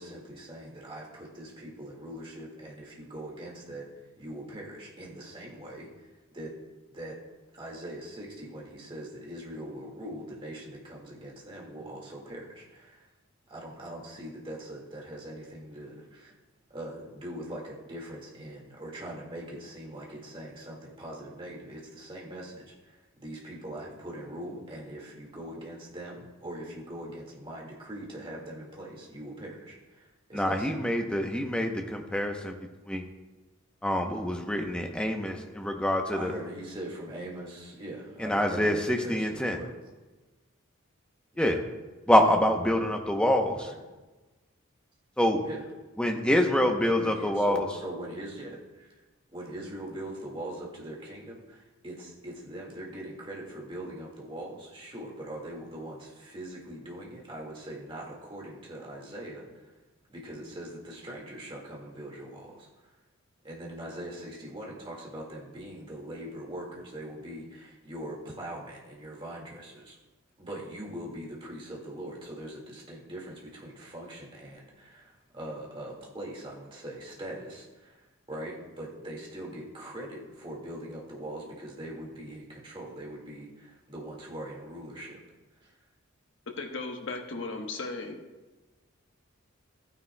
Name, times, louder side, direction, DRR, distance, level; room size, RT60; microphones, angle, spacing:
voice 1, 0.0-3.9 4.2-6.6 6.9-7.2 7.5-13.1 13.5-16.3 16.7-30.8 36.1-39.8 41.3-41.6 43.6-43.8 45.4-45.6 46.5-49.0 49.3-59.7 60.1-62.7 63.4-70.0 70.4-85.2 85.6-85.7, right 1 dB, 25° right, -3 dB, 1.9 m, -41 dB
voice 2, 30.3-32.5 32.9-33.0 33.8-36.3 38.2-39.6 41.4-41.5 42.1-43.7 45.2-45.4 46.0-47.7, left 1 dB, 5° left, 3 dB, 0.7 m, -26 dB
voice 3, 86.6-88.2, left 3 dB, 60° left, 3 dB, 1.1 m, -36 dB
15.0 x 9.5 x 2.2 m, 1.2 s
head